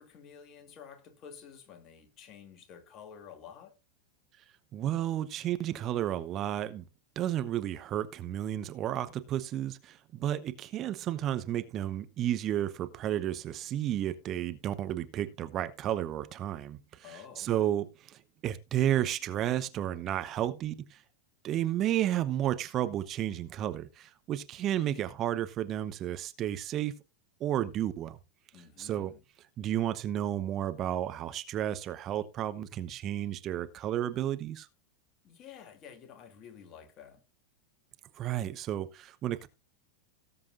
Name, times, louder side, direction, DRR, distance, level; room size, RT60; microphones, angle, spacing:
voice 1, 0.0-3.7 17.0-17.7 28.5-29.2 35.2-37.2, left 7 dB, 35° left, 2.6 m, -51 dB
voice 2, 4.7-6.8 7.2-21.0 21.4-27.0 27.4-28.2 28.8-29.1 29.6-34.7 38.2-39.5, right 12 dB, 30° right, 0.9 m, -32 dB
18.0 x 7.6 x 2.6 m
figure-of-eight pair, 90°, 0 cm